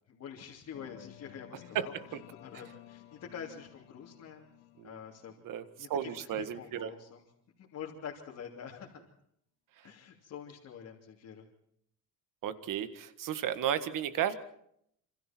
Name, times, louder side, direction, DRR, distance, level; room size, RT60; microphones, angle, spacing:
voice 1, 0.1-1.9 2.4-4.5 4.8-5.4 5.8-7.2 7.6-9.0 9.8-11.4, left 7 dB, 45° left, -2 dB, 3.2 m, -46 dB
sound 1, 0.7-6.6, left 13 dB, 75° left, 2.3 m, -55 dB
voice 2, 5.9-6.9 12.4-14.3, right 9 dB, 55° right, 11 dB, 1.8 m, -33 dB
27.5 x 27.0 x 4.5 m, 0.72 s
cardioid pair, 165°, 39 cm